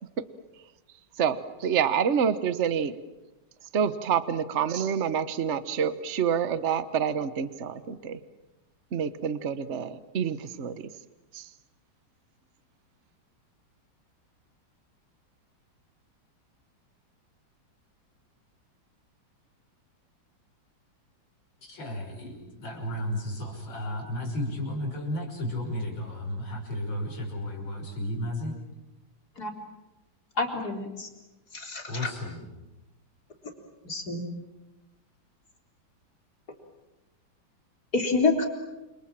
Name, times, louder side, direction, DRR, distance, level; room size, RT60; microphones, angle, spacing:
voice 1, 1.2-2.9 3.7-8.2 8.9-10.8 11.3-11.5, right 7 dB, 40° right, 13 dB, 1.3 m, -27 dB
voice 2, 21.6-28.5 31.9-32.5, left 1 dB, 85° left, 1 dB, 6.6 m, -33 dB
voice 3, 30.4-31.1 31.5-32.1 33.8-34.2 37.9-38.5, left 3 dB, 50° left, 3 dB, 4.5 m, -27 dB
29.0 x 27.5 x 7.5 m, 1.0 s
omnidirectional pair, 2.1 m